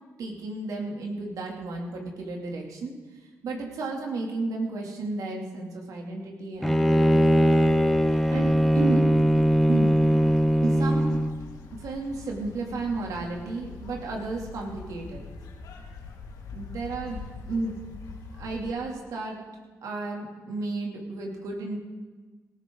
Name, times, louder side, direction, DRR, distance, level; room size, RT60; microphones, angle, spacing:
voice 1, 0.2-2.9 3.4-7.5 8.3-9.1 9.7-9.9 10.6-11.2 11.7-15.2 16.5-17.2 17.5-17.8 18.3-19.4 19.8-21.8, right 3 dB, 75° right, 0 dB, 2.9 m, -33 dB
Bowed string instrument, 6.6-11.4, equal, 5° left, 0.9 m, -21 dB
sound 1, 7.6-18.7, left 4 dB, 80° left, 1.9 m, -43 dB
17.5 x 14.5 x 3.9 m, 1.3 s
cardioid pair, 65°, 6 cm